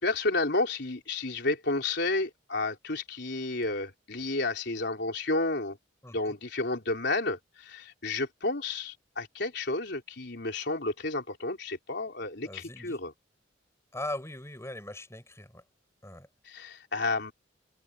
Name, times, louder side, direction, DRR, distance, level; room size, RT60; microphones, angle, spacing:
voice 1, 0.0-5.8 6.1-13.1 16.5-17.3, left 2 dB, 60° left, 4.2 m, -31 dB
voice 2, 6.0-6.3 12.4-13.0 13.9-15.6 16.0-16.3, left 1 dB, 15° left, 7.1 m, -40 dB
head